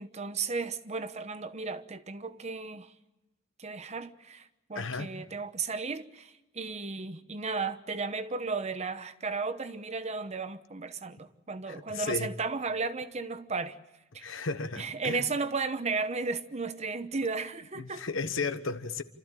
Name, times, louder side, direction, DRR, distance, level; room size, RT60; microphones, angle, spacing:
voice 1, 0.0-2.9 3.6-13.8 14.1-14.3 14.8-18.0, right 4 dB, 35° right, 1.0 m, -34 dB
voice 2, 4.7-5.1 11.7-12.3 14.2-15.2 17.8-19.0, left 4 dB, 70° left, 1.2 m, -34 dB
28.5 x 14.0 x 9.0 m
head